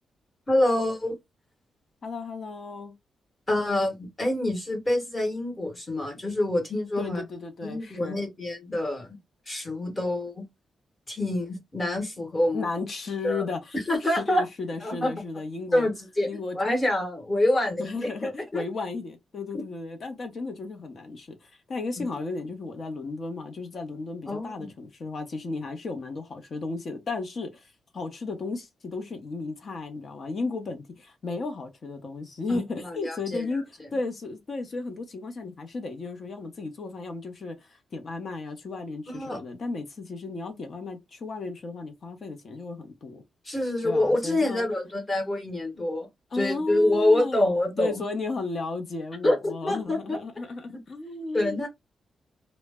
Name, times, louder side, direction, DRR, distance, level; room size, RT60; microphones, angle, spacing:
voice 1, 0.5-1.2 3.5-7.2 7.6-9.2 9.5-10.4 11.1-12.7 13.2-13.4 13.9-14.4 14.8-15.1 15.7-18.6 22.0-22.1 24.3-24.7 32.5-33.5 39.1-39.4 43.4-46.1 46.3-47.9 49.2-50.2 50.7-50.8 51.3-51.7, left 1 dB, 20° left, 0.9 m, -26 dB
voice 2, 2.0-2.9 7.0-8.2 12.5-15.9 16.3-16.6 17.8-27.6 27.9-33.6 33.9-43.2 43.8-44.7 46.3-47.5 47.8-51.7, left 3 dB, 40° left, 0.6 m, -34 dB
2.0 x 2.0 x 3.3 m
wide cardioid pair, 165°, 0 cm